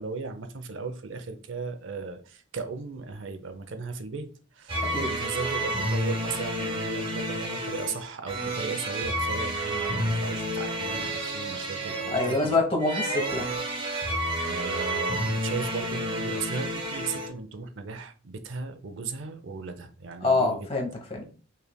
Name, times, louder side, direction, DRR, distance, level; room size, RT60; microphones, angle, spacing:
voice 1, 0.0-4.3 4.5-12.6 14.4-20.7, right 4 dB, 70° right, 8 dB, 0.5 m, -36 dB
sound 1, 4.7-17.3, right 1 dB, 25° right, 1.1 m, -30 dB
voice 2, 12.1-13.5 20.2-21.2, left 3 dB, 25° left, 2 dB, 0.9 m, -26 dB
5.4 x 3.2 x 2.2 m, 0.37 s
head